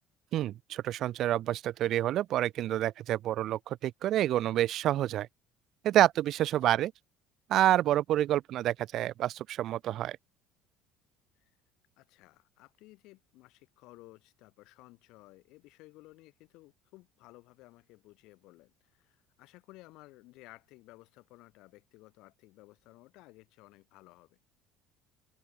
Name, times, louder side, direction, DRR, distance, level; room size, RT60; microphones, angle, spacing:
voice 1, 0.3-5.3 5.8-6.9 7.5-10.2, right 13 dB, 60° right, 0.8 m, -28 dB
voice 2, 12.0-24.4, left 20 dB, 70° left, 7.8 m, -56 dB
supercardioid pair, 90°, 0 cm